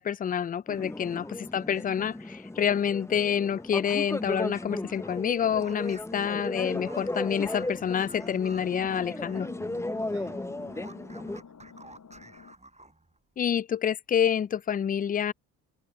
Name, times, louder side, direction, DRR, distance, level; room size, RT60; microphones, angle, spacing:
voice 1, 0.0-9.5 13.4-15.3, left 8 dB, 20° left, 0.3 m, -28 dB
sound 1, 0.7-11.4, left 1 dB, 5° left, 0.8 m, -36 dB
sound 2, 4.9-9.6 9.9-13.2, right 2 dB, 15° right, 7.5 m, -52 dB
sound 3, 7.4-12.5, left 6 dB, 45° left, 6.0 m, -50 dB
voice 2, 10.1-10.9 11.3-11.8, right 13 dB, 70° right, 6.6 m, -62 dB
open air
hypercardioid pair, 50°, 42 cm